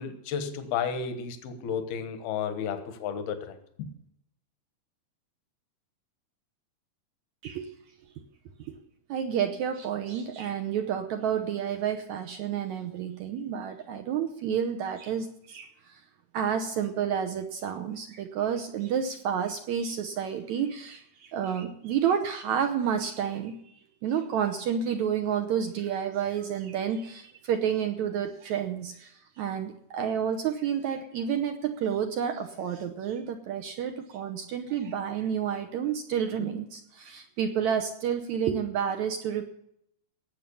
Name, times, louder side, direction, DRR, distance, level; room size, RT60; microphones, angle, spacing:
voice 1, 0.0-3.9, left 7 dB, 80° left, 9 dB, 3.2 m, -33 dB
voice 2, 9.1-15.9 16.3-23.7 24.0-39.5, right 8 dB, 75° right, 6 dB, 1.7 m, -30 dB
18.0 x 7.5 x 7.0 m, 0.75 s
omnidirectional pair, 4.4 m